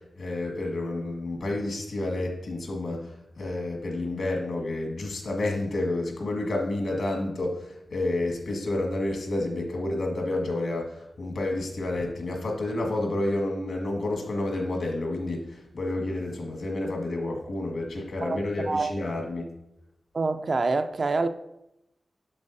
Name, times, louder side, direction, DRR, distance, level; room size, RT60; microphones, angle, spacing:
voice 1, 0.2-3.0 3.4-19.5, left 2 dB, 80° left, 1.7 m, -30 dB
voice 2, 18.2-18.9 20.1-21.3, right 3 dB, 45° right, 0.4 m, -26 dB
8.5 x 7.1 x 2.7 m
wide cardioid pair, 140°, 0 cm